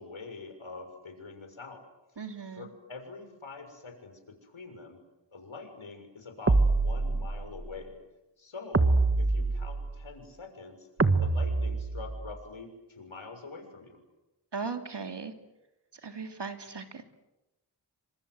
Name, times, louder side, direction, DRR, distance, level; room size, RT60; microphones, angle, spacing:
voice 1, 0.0-1.8 2.5-5.0 5.3-8.0 8.4-10.9 11.2-14.0, left 4 dB, 75° left, 5 dB, 6.7 m, -45 dB
voice 2, 2.2-2.7 14.5-15.3 16.0-17.0, right 5 dB, 60° right, 6 dB, 3.1 m, -38 dB
sound 1, 6.5-7.5 8.7-10.0 11.0-12.3, right 3 dB, 30° right, 1.6 m, -25 dB
28.5 x 26.0 x 7.9 m, 0.99 s
wide cardioid pair, 60°, 48 cm